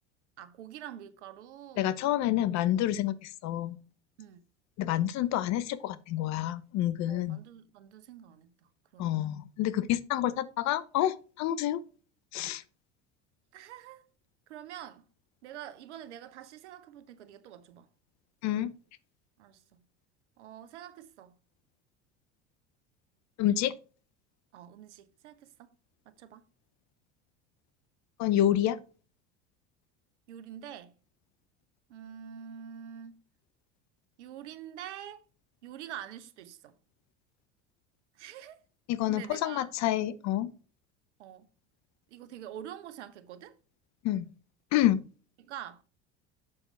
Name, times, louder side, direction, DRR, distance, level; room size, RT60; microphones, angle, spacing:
voice 1, 0.4-2.0 4.2-4.4 7.1-8.5 8.9-9.2 13.5-14.1 14.5-15.1 15.4-17.9 19.4-19.8 20.4-21.4 24.5-25.7 26.1-26.5 30.3-30.9 31.9-33.2 34.2-35.2 35.6-36.7 38.1-38.6 39.1-39.7 41.2-41.5 42.1-43.6 45.4-45.8, right 10 dB, 80° right, 1.0 m, -46 dB
voice 2, 1.8-3.8 4.8-7.4 9.0-11.8 12.3-12.6 18.4-18.7 23.4-23.7 28.2-28.8 38.9-40.5 44.0-44.3 44.7-45.0, left 12 dB, 50° left, 0.8 m, -28 dB
7.1 x 6.3 x 3.2 m
hypercardioid pair, 80°, 34 cm